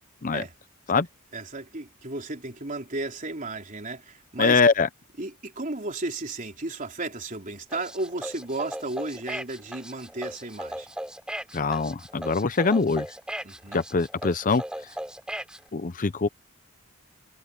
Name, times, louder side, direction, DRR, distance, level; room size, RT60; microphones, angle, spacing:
voice 1, 1.3-4.6 5.2-10.9 13.4-13.8, right 2 dB, 40° right, 3.9 m, -34 dB
voice 2, 4.4-4.9 11.5-13.1 13.7-14.6 15.7-16.3, left 4 dB, 40° left, 0.7 m, -23 dB
sound 1, 7.7-15.6, right 1 dB, 5° right, 3.4 m, -36 dB
head